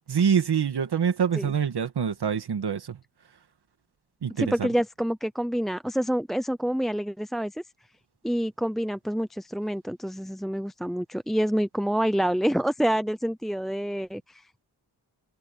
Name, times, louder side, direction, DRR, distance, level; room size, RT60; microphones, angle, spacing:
voice 1, 0.1-3.0 4.2-4.7, right 7 dB, 75° right, 2.1 m, -25 dB
voice 2, 4.4-7.5 8.2-14.6, equal, ahead, 0.5 m, -27 dB
wide cardioid pair, 100°, 40 cm